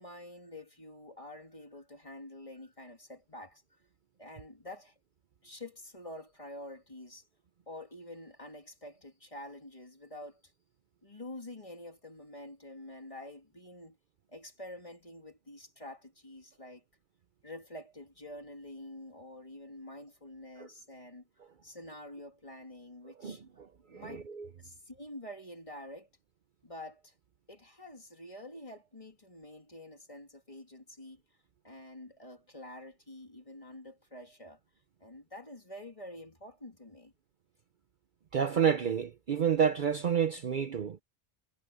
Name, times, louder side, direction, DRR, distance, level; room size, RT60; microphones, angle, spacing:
voice 1, 0.0-3.6 4.2-4.9 5.4-7.2 7.7-10.4 11.0-14.0 14.3-16.8 17.4-21.3 21.6-23.4 23.9-24.3 24.6-26.1 26.6-27.1 27.5-31.2 31.6-34.6 35.0-37.1, left 1 dB, 30° left, 2.5 m, -47 dB
voice 2, 23.2-24.5 38.3-41.0, right 7 dB, 50° right, 0.8 m, -30 dB
omnidirectional pair, 1.2 m